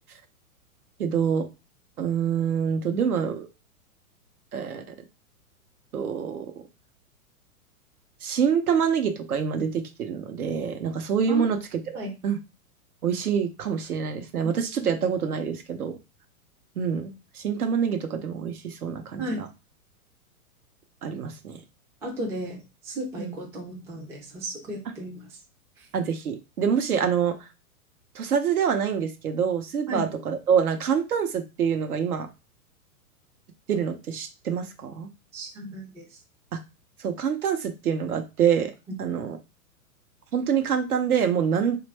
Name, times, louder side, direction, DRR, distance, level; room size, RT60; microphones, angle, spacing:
voice 1, 1.0-1.5 2.0-3.5 4.5-4.8 5.9-6.5 8.2-11.6 11.9-12.4 13.0-15.9 16.8-19.5 21.0-21.6 23.2-23.3 25.9-27.5 28.1-32.3 33.7-35.1 37.0-38.7 39.0-39.4 40.3-41.8, right 7 dB, 75° right, 6 dB, 0.9 m, -26 dB
voice 2, 22.0-25.3 25.8-25.9 29.9-30.1 35.3-36.1, right 1 dB, 5° right, -1 dB, 0.4 m, -34 dB
3.2 x 2.5 x 3.2 m, 0.27 s
hypercardioid pair, 110°, 44 cm